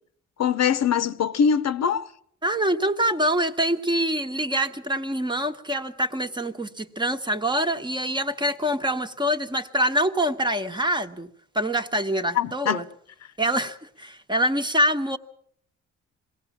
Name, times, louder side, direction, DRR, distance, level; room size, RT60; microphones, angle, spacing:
voice 1, 0.4-2.1 12.3-12.8, left 7 dB, 60° left, 0.9 m, -22 dB
voice 2, 2.4-11.3 11.5-12.8 13.4-15.2, right 1 dB, 15° right, 1.2 m, -25 dB
21.5 x 17.0 x 7.2 m
cardioid pair, 90°, 30 cm